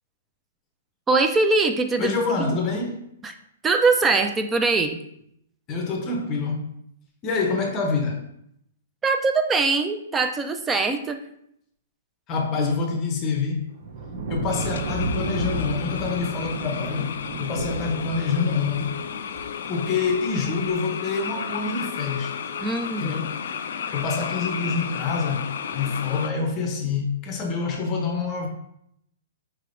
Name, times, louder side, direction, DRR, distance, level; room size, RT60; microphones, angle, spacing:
voice 1, 1.1-2.1 2.4-2.5 3.2-3.3 3.6-5.0 9.0-11.2 12.6-12.7 22.6-23.3, right 3 dB, 10° right, 7 dB, 0.3 m, -22 dB
voice 2, 2.0-3.0 5.7-6.7 7.2-8.2 12.3-13.7 14.3-19.0 19.7-22.3 23.0-23.4 23.9-28.5, left 4 dB, 25° left, 2 dB, 0.6 m, -26 dB
sound 1, 13.8-19.3 20.5-20.8, right 3 dB, 50° right, 0.7 m, -32 dB
sound 2, 14.5-26.3, left 7 dB, 65° left, 0.3 m, -33 dB
sound 3, 17.5-22.6, left 7 dB, 90° right, 0.8 m, -43 dB
4.7 x 3.3 x 2.5 m, 0.73 s
hypercardioid pair, 155°, 0 cm